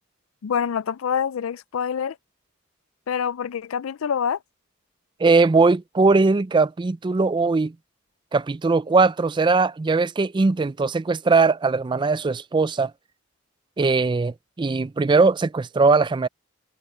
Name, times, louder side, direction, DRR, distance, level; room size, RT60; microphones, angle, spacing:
voice 1, 0.4-2.2 3.1-4.4, left 7 dB, 75° left, 0.4 m, -26 dB
voice 2, 5.2-7.7 8.3-12.9 13.8-16.3, right 3 dB, 20° right, 0.3 m, -20 dB
head